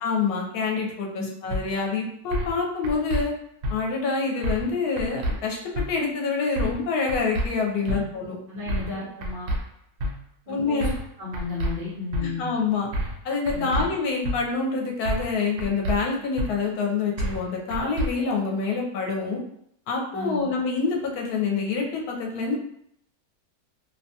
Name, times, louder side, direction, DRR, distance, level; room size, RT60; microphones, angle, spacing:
voice 1, 0.0-3.3 3.7-8.3 10.5-10.9 12.2-12.9 13.2-19.4 19.9-22.5, left 4 dB, 85° left, 0 dB, 1.1 m, -26 dB
sound 1, 1.5-1.6 2.3-2.6 2.8-3.2 3.6-3.8 4.4-4.7 5.0-5.4 5.8-5.9 6.6-6.8 7.1-7.5 7.9-8.0 8.7-8.9 9.2-9.6 10.0-10.1 10.8-11.1 11.3-11.7 12.1-12.2 12.9-13.2 13.5-13.8 14.2-14.4 15.1-15.3 15.6-16.0 16.4-16.5 17.2-17.4 17.7-18.1, equal, 90° right, 1.1 m, -27 dB
voice 2, 7.8-8.1 8.5-9.5 10.5-10.9 11.2-12.5 13.5-13.8 20.1-20.5, left 4 dB, 45° right, -8 dB, 0.8 m, -33 dB
2.7 x 2.2 x 2.7 m, 0.72 s
omnidirectional pair, 1.6 m